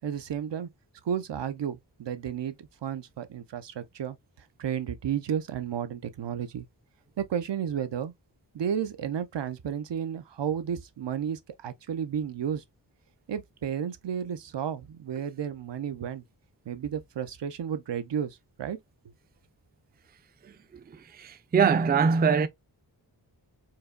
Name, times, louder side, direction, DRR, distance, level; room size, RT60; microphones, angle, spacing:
voice 1, 0.0-0.7 1.0-4.2 4.6-6.7 7.2-8.1 8.5-12.6 13.3-16.2 16.7-18.8, right 8 dB, 80° right, 0.6 m, -32 dB
voice 2, 21.2-22.5, right 6 dB, 25° right, 0.3 m, -22 dB
4.6 x 2.8 x 2.3 m
wide cardioid pair, 100°, 42 cm